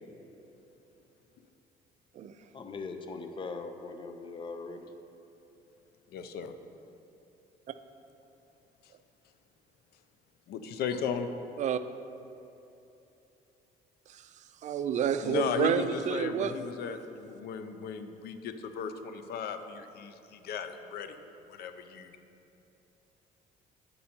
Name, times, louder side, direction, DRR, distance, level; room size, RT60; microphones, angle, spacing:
voice 1, 2.5-4.9, left 4 dB, 30° left, 6 dB, 0.6 m, -40 dB
voice 2, 6.1-6.5 10.5-11.3 15.2-21.2 21.5-22.2, left 7 dB, 70° left, 9 dB, 0.5 m, -36 dB
voice 3, 14.6-16.5, right 8 dB, 45° right, 11 dB, 0.4 m, -29 dB
8.4 x 5.3 x 4.3 m, 3.0 s
cardioid pair, 110°, 17 cm